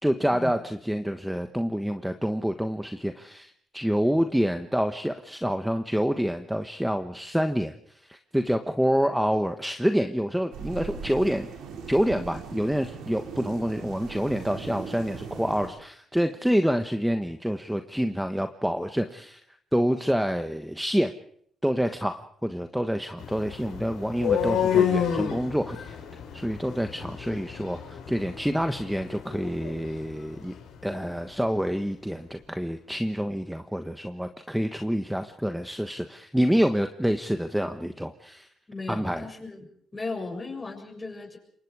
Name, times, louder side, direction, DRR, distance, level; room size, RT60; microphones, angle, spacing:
voice 1, 0.0-7.7 8.0-11.5 11.9-19.4 19.7-21.1 21.6-25.9 26.3-30.5 30.8-38.5 38.9-39.3, equal, 5° right, 7 dB, 1.3 m, -27 dB
sound 1, 10.5-15.7, right 6 dB, 85° right, 5.6 m, -39 dB
sound 2, 23.2-31.1, left 8 dB, 90° left, 5.6 m, -30 dB
voice 2, 38.7-39.7 39.9-41.4, left 3 dB, 20° left, 3 dB, 7.2 m, -36 dB
27.5 x 23.0 x 4.9 m, 0.66 s
cardioid pair, 90°, 0 cm